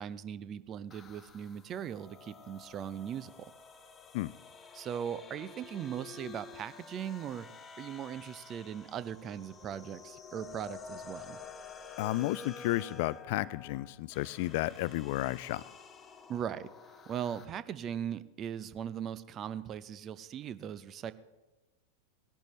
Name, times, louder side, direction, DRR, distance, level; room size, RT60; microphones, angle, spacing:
voice 1, 0.0-3.5 4.7-7.5 7.8-11.4 16.3-16.7 17.1-21.1, right 9 dB, 30° right, 15 dB, 0.6 m, -39 dB
sound 1, 0.9-17.4, left 5 dB, 20° left, 1.0 m, -50 dB
voice 2, 12.0-15.6, left 17 dB, 50° left, 20 dB, 0.3 m, -32 dB
18.5 x 11.5 x 3.1 m, 1.1 s
figure-of-eight pair, 90°, 0 cm